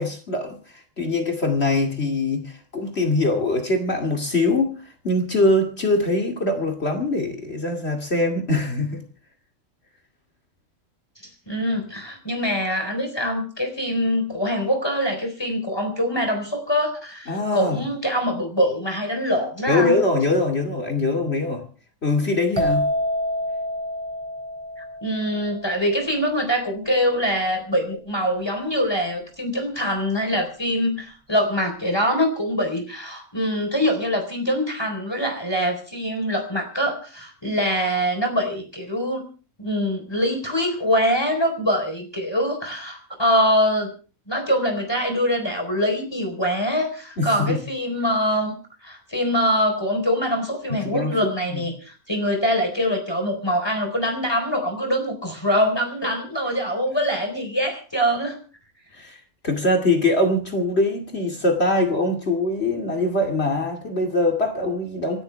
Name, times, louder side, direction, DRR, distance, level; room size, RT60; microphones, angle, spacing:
voice 1, 0.0-9.0 17.3-17.8 19.7-21.6 22.0-22.9 47.2-47.6 50.7-51.7 58.9-65.2, left 2 dB, 50° left, 2.7 m, -23 dB
voice 2, 11.5-19.9 25.0-39.2 39.6-43.9 44.3-48.5 48.8-58.4, equal, 20° left, 4.2 m, -24 dB
sound 1, 22.6-26.2, left 1 dB, 20° right, 3.0 m, -27 dB
27.5 x 13.0 x 3.4 m
omnidirectional pair, 1.4 m